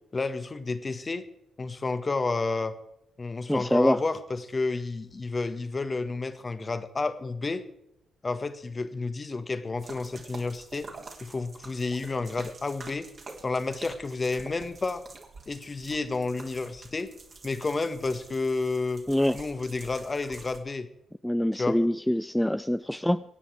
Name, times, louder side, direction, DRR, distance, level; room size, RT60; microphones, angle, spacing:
voice 1, 0.1-1.2 1.6-2.8 3.2-7.6 8.2-10.9 11.2-13.1 13.4-15.0 15.5-17.1 17.4-19.1 19.3-20.9 21.6-21.8, left 3 dB, 35° left, 10 dB, 1.7 m, -30 dB
voice 2, 3.5-4.0 19.1-19.4 21.2-23.2, left 1 dB, 5° left, 11 dB, 0.5 m, -24 dB
sound 1, 9.8-20.6, right 3 dB, 45° right, 3.4 m, -47 dB
24.5 x 9.8 x 4.7 m, 0.80 s
figure-of-eight pair, 40°, 0 cm